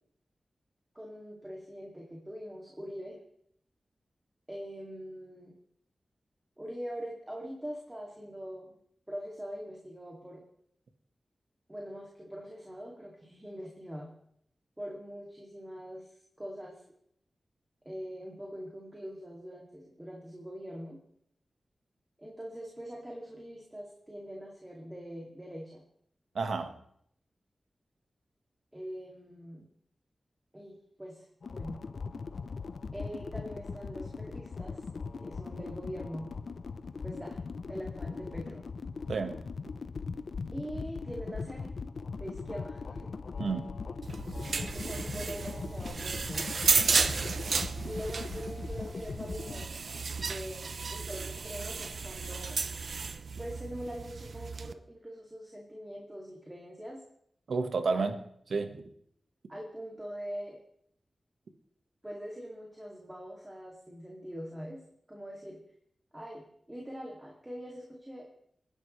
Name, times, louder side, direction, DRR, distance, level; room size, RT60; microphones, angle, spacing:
voice 1, 0.9-3.2 4.5-5.5 6.6-8.7 9.1-10.4 11.7-14.1 14.8-16.1 16.4-16.8 17.8-21.0 22.2-25.8 28.7-29.7 30.5-31.3 31.5-31.8 32.9-34.8 35.2-36.3 37.0-38.6 40.5-41.7 42.2-43.1 44.6-46.5 47.9-49.7 50.2-52.6 53.4-57.0 57.9-58.1 59.5-60.6 62.0-64.8 65.1-65.6 66.1-68.3, equal, 10° right, 2.5 m, -43 dB
voice 2, 26.3-26.7 39.1-39.4 43.4-43.8 57.5-58.2 58.5-58.8, right 4 dB, 85° right, 1.4 m, -31 dB
sound 1, 31.4-49.7, left 4 dB, 65° left, 0.7 m, -40 dB
sound 2, 44.0-54.7, right 4 dB, 65° right, 0.7 m, -33 dB
28.0 x 10.5 x 3.3 m
wide cardioid pair, 135°, 0 cm